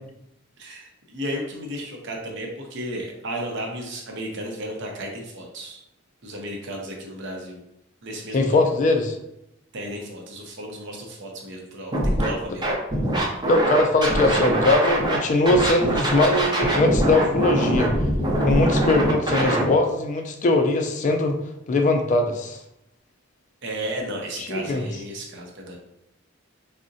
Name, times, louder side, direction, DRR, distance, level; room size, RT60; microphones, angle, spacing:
voice 1, 0.6-5.8 6.2-7.6 8.0-8.7 9.7-12.7 23.6-25.8, right 1 dB, 60° right, 0 dB, 0.6 m, -34 dB
voice 2, 8.3-9.2 13.5-17.9 18.4-21.4 21.7-22.6 24.4-24.9, left 2 dB, 40° left, 4 dB, 0.3 m, -21 dB
Scratching (performance technique), 11.9-12.3 12.6-15.2 15.5-19.6, right 1 dB, 20° right, 0.5 m, -22 dB
3.6 x 2.1 x 2.6 m, 0.81 s
head